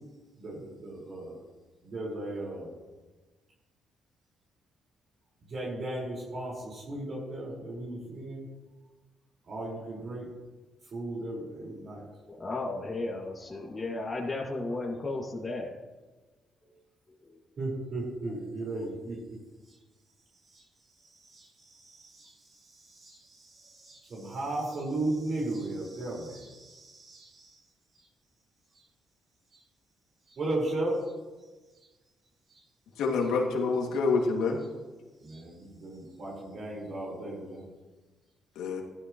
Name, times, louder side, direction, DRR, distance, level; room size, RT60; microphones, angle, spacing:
voice 1, 0.4-1.3 1.8-2.7 5.5-8.5 9.5-10.3 10.9-12.0 17.6-19.2 19.7-19.8 20.4-20.6 21.1-27.6 28.7-28.8 29.5-29.6 30.3-31.1 31.8-31.9 32.5-32.6 35.2-37.6, right 2 dB, 50° right, -3 dB, 4.8 m, -36 dB
voice 2, 12.4-15.7, left 2 dB, 25° left, -3 dB, 2.3 m, -34 dB
voice 3, 33.0-34.6 38.6-38.8, left 4 dB, 85° left, 0 dB, 2.3 m, -27 dB
15.5 x 12.0 x 3.1 m, 1.2 s
cardioid pair, 90°, 0 cm